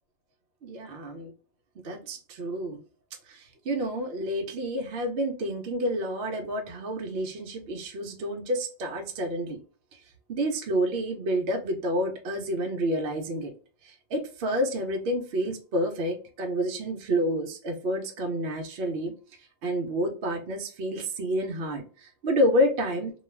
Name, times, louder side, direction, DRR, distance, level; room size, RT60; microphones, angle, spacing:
voice 1, 0.6-1.3 1.8-2.8 3.3-9.6 10.3-13.5 13.8-19.1 19.6-23.1, equal, 60° right, 3 dB, 0.7 m, -29 dB
2.3 x 2.3 x 3.1 m, 0.38 s
omnidirectional pair, 1.4 m